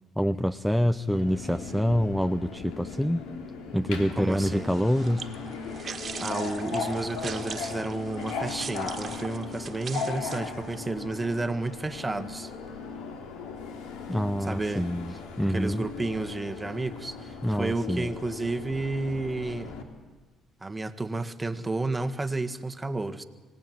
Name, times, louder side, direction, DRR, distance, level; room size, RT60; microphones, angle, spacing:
voice 1, 0.2-3.2 3.7-5.3 14.1-15.8 17.4-18.1, equal, 5° left, 13 dB, 0.7 m, -26 dB
Subway metro underground, 1.1-19.8, left 5 dB, 85° left, 3.1 m, -38 dB
voice 2, 4.1-4.7 6.2-12.5 14.4-14.9 15.5-19.7 20.6-23.2, right 2 dB, 15° right, 10 dB, 1.7 m, -31 dB
sound 1, 4.6-10.8, right 6 dB, 45° right, 1.9 m, -41 dB
25.5 x 18.0 x 9.4 m, 1.4 s
supercardioid pair, 80°, 0 cm